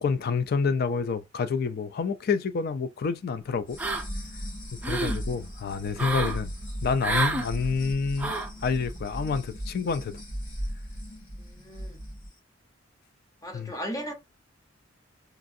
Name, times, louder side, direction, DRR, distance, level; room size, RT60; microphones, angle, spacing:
voice 1, 0.0-3.8 4.8-6.5 6.8-8.4 8.6-10.2 13.5-13.7, left 5 dB, 50° left, 0.4 m, -28 dB
sound 1, 3.7-12.3, equal, 85° left, 1.4 m, -37 dB
sound 2, 3.8-4.3 4.6-5.2 6.0-6.4 7.0-7.5 8.2-8.5, right 3 dB, 10° right, 0.5 m, -29 dB
voice 2, 11.6-12.0 13.4-14.1, equal, 20° left, 0.8 m, -36 dB
2.9 x 2.5 x 2.6 m
head